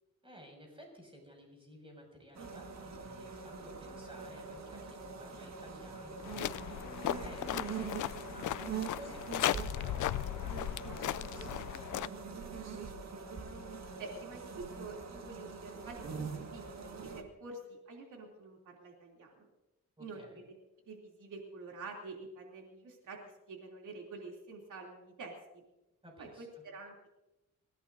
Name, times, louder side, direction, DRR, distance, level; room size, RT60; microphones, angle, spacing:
voice 1, 0.2-12.7 20.0-20.4 26.0-26.6, equal, 15° right, 1 dB, 6.2 m, -55 dB
sound 1, 2.3-17.2, right 5 dB, 60° right, 1.8 m, -44 dB
sound 2, 6.2-12.1, left 12 dB, 75° left, 0.5 m, -36 dB
voice 2, 14.0-19.5 20.0-20.2 20.5-20.6 20.9-25.3 26.2-27.2, right 3 dB, 80° right, 0 dB, 2.9 m, -48 dB
27.0 x 16.0 x 2.7 m, 0.97 s
wide cardioid pair, 120°, 30 cm